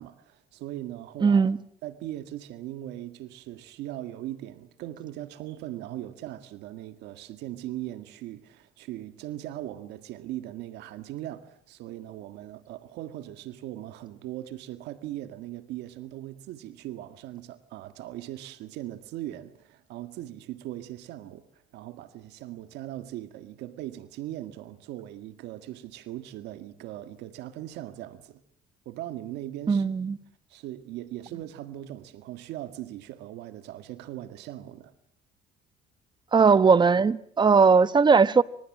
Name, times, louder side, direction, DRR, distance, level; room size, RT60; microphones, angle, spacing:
voice 1, 0.0-1.5 1.8-21.4 21.7-28.4 28.9-29.9 30.5-34.9, right 14 dB, 85° right, 1.9 m, -39 dB
voice 2, 1.2-1.6 29.7-30.2 36.3-38.4, right 5 dB, 25° right, 1.2 m, -19 dB
27.0 x 26.0 x 7.5 m
cardioid pair, 110°, 17 cm